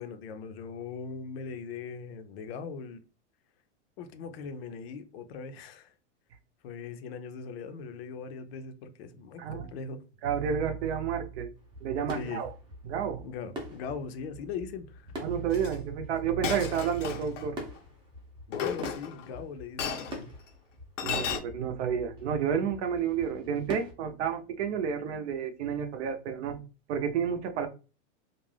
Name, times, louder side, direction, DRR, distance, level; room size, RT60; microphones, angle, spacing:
voice 1, 0.0-3.0 4.0-5.9 6.6-10.0 12.1-12.4 13.2-15.1 18.5-20.3, left 5 dB, 55° left, 0.6 m, -40 dB
voice 2, 10.2-11.5 11.8-12.5 12.8-13.2 15.2-17.6 21.0-26.6 26.9-27.7, right 7 dB, 65° right, 0.7 m, -30 dB
sound 1, 11.6-23.9, equal, 15° right, 0.6 m, -45 dB
Chink clink, 15.5-15.7 16.4-17.4 18.5-19.3 19.8-20.2 21.0-21.4, left 7 dB, 90° left, 0.8 m, -33 dB
2.5 x 2.1 x 3.2 m
supercardioid pair, 145°, 36 cm